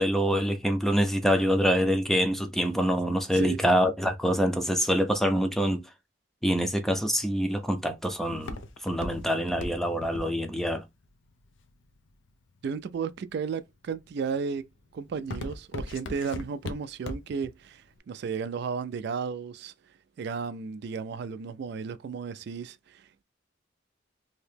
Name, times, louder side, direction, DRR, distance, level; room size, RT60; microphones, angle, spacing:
voice 1, 0.0-5.8 6.4-10.8, equal, ahead, 0.5 m, -25 dB
Walk footsteps, 7.2-12.3 12.9-13.4 13.9-14.2 14.6-17.5 17.8-17.9, left 2 dB, 85° left, 0.6 m, -38 dB
voice 2, 12.6-14.6 14.9-19.7 20.2-23.2, right 5 dB, 60° right, 0.3 m, -34 dB
2.9 x 2.8 x 3.3 m
head